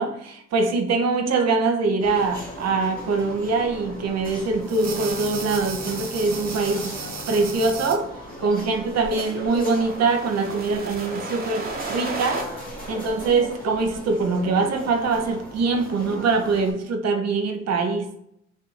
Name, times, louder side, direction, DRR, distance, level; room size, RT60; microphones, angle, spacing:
voice 1, 0.0-7.0 7.3-8.1 8.4-12.5 12.9-18.1, right 4 dB, 60° right, 0.7 m, -23 dB
sound 1, 2.0-16.7, equal, 30° left, 1.2 m, -38 dB
sound 2, 4.6-8.0 9.1-12.4, right 3 dB, 30° right, 1.0 m, -34 dB
3.6 x 2.5 x 4.1 m
cardioid pair, 90°, 30 cm